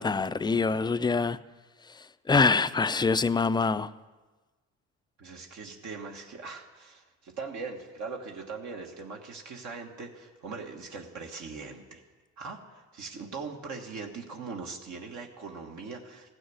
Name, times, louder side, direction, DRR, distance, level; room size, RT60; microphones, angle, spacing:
voice 1, 0.0-1.4 1.8-3.9, left 4 dB, 15° left, 0.4 m, -25 dB
voice 2, 5.2-12.0 12.4-16.3, right 4 dB, 70° right, 1.5 m, -41 dB
15.0 x 6.3 x 9.4 m
cardioid pair, 90°, 30 cm